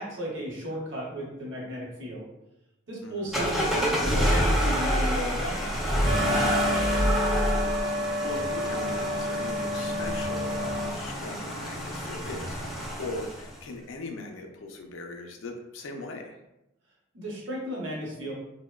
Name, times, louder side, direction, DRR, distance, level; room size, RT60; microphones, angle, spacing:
voice 1, 0.0-2.2 2.9-5.7 17.1-18.3, equal, 60° right, -4 dB, 0.8 m, -34 dB
voice 2, 3.0-3.4 6.5-7.3 8.0-16.4, left 2 dB, 70° left, 4 dB, 0.4 m, -40 dB
sound 1, 3.3-13.6, equal, ahead, 0.4 m, -28 dB
sound 2, 6.1-10.9, left 1 dB, 75° right, 0.4 m, -29 dB
2.8 x 2.0 x 2.2 m, 0.90 s
head